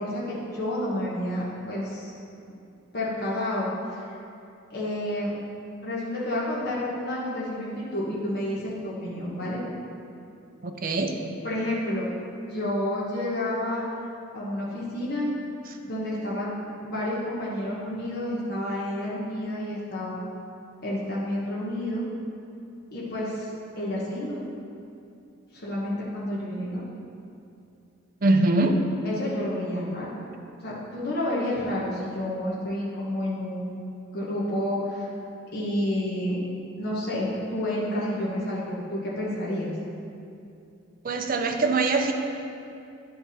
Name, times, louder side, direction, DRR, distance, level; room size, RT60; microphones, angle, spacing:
voice 1, 0.0-2.1 2.9-4.0 4.7-5.3 5.8-9.6 11.4-12.1 12.5-13.8 14.3-15.3 15.8-16.5 16.8-20.2 20.8-22.0 22.9-23.5 23.8-24.4 25.5-26.9 29.0-30.2 30.6-33.8 34.1-35.1 35.5-36.4 36.8-39.7, left 1 dB, 50° left, -7 dB, 1.2 m, -30 dB
voice 2, 10.6-11.1 28.2-28.8 41.0-42.1, right 2 dB, 40° right, 4 dB, 0.5 m, -22 dB
10.0 x 4.6 x 4.2 m, 2.6 s
head